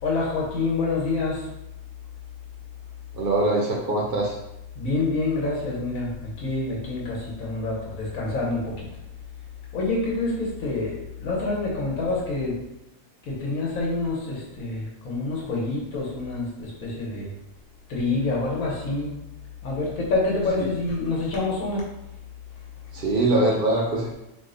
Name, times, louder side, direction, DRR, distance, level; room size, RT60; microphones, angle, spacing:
voice 1, 0.0-1.4 4.7-8.9 9.7-12.5 13.3-17.3 17.9-19.1 19.6-21.8, left 3 dB, 85° left, -4 dB, 1.3 m, -27 dB
voice 2, 3.1-4.3 22.9-24.1, right 2 dB, 55° right, -2 dB, 0.6 m, -22 dB
2.9 x 2.1 x 3.7 m, 0.89 s
omnidirectional pair, 1.4 m